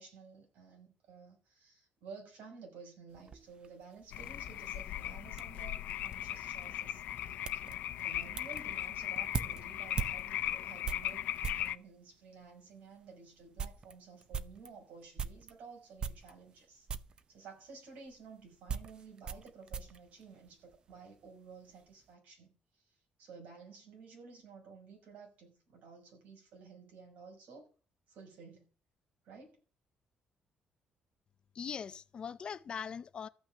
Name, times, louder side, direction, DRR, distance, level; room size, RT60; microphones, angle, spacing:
voice 1, 0.0-11.3 11.5-16.9 17.3-27.7 28.1-28.6 29.2-29.6, right 5 dB, 70° right, 6.1 m, -53 dB
sound 1, 3.1-11.8 12.5-12.6 13.0-13.1 13.4-15.6 16.0-16.6 16.9-17.2 18.1-21.0 21.3-21.8, right 6 dB, 30° right, 0.7 m, -42 dB
sound 2, 4.1-11.8, left 13 dB, 85° left, 0.7 m, -38 dB
voice 2, 31.5-33.3, left 7 dB, 35° left, 0.5 m, -41 dB
14.0 x 6.0 x 9.2 m
cardioid pair, 165°, 3 cm